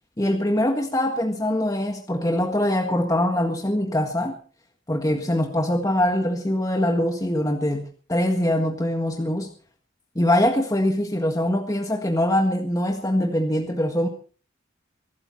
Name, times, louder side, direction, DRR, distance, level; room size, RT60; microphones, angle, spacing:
voice 1, 0.2-4.4 4.9-9.5 10.1-14.1, left 1 dB, 15° left, 3 dB, 1.7 m, -23 dB
23.0 x 13.5 x 4.2 m, 0.40 s
head